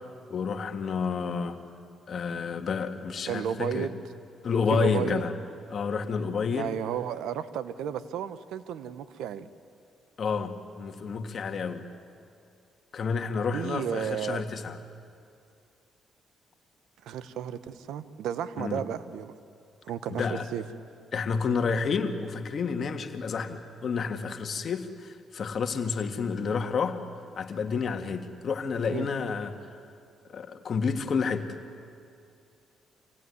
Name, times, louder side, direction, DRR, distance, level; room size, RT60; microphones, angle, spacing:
voice 1, 0.3-1.6 2.1-3.9 4.4-5.3 5.7-6.7 10.2-11.9 12.9-14.8 18.6-18.8 20.1-20.5 21.1-27.0 27.4-29.5 30.3-31.5, left 5 dB, 50° left, 7 dB, 1.7 m, -30 dB
voice 2, 3.3-4.0 4.7-5.3 6.5-9.5 13.5-14.4 17.0-19.3 19.8-20.6 28.9-29.1, right 9 dB, 85° right, 14 dB, 0.9 m, -33 dB
26.5 x 17.0 x 9.7 m, 2.5 s
cardioid pair, 90°, 0 cm